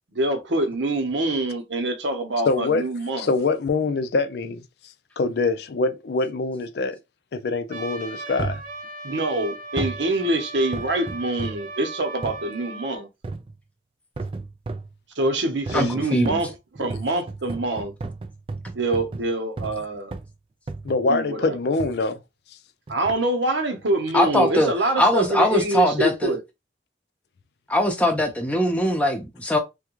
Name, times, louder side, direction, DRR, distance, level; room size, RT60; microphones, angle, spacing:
voice 1, 0.1-3.3 9.0-13.1 15.2-17.9 18.7-20.2 21.1-21.6 22.9-26.4, right 2 dB, 85° right, 0.9 m, -25 dB
voice 2, 2.5-2.9 3.2-4.6 5.2-7.0 7.3-8.6 15.7-15.9 16.8-16.9 20.8-22.2, left 3 dB, 60° left, 0.4 m, -24 dB
Trumpet, 7.7-13.0, right 2 dB, 45° right, 0.7 m, -37 dB
sound 1, 8.4-8.7 9.8-10.1 10.7-11.7 12.2-12.5 13.2-13.6 14.2-15.0 15.7-15.9 16.2-19.8 20.1-20.4 20.7-21.1 21.8-22.0 22.9-23.2 23.8-23.9, right 3 dB, 30° right, 0.3 m, -33 dB
voice 3, 15.7-16.4 24.1-24.7 25.0-26.3 27.7-29.6, left 1 dB, 10° left, 0.6 m, -21 dB
3.5 x 2.2 x 3.0 m
head